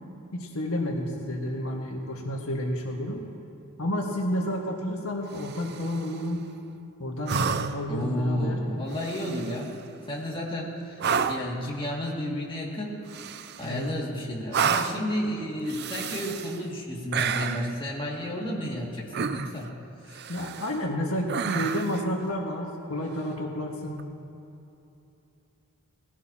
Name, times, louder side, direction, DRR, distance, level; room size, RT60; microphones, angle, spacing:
voice 1, 0.3-3.2 3.8-6.5 7.0-8.6 13.6-13.9 20.3-24.1, left 1 dB, 85° left, 0 dB, 1.7 m, -30 dB
sound 1, 5.3-6.0 7.3-7.9 8.9-9.7 11.0-11.6 13.1-13.8 14.5-15.1 15.7-16.6 17.1-17.7 19.1-19.7 20.1-20.8 21.3-22.0 23.9-24.0, right 6 dB, 50° right, 0.5 m, -30 dB
voice 2, 7.9-9.8 10.1-13.0 13.6-19.7 20.1-20.2, equal, 25° left, -4 dB, 2.3 m, -32 dB
20.0 x 16.5 x 2.9 m, 2.8 s
head